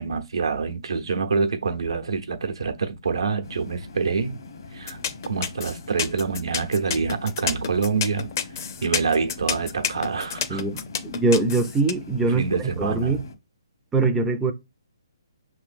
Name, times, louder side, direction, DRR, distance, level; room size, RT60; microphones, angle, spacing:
voice 1, 0.0-4.4 4.7-5.0 5.3-8.3 8.8-10.6 12.3-13.2, right 5 dB, 80° right, 0.8 m, -26 dB
sound 1, 3.4-13.3, left 3 dB, 65° left, 1.0 m, -42 dB
sound 2, 4.9-11.9, left 8 dB, 40° left, 0.5 m, -28 dB
voice 2, 10.5-12.4 12.8-13.2 13.9-14.5, right 3 dB, 10° right, 0.4 m, -22 dB
5.6 x 3.1 x 2.5 m
hypercardioid pair, 160°, 3 cm